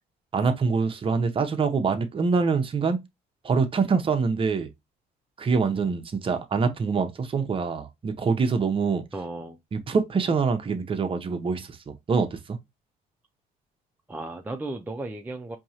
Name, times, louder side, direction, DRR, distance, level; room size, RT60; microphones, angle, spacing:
voice 1, 0.3-3.0 3.4-4.7 5.4-9.0 9.7-12.6, right 5 dB, 30° right, 0.7 m, -25 dB
voice 2, 9.1-9.6 14.1-15.6, right 2 dB, 10° right, 0.4 m, -35 dB
4.6 x 2.8 x 2.8 m
cardioid pair, 110°, 17 cm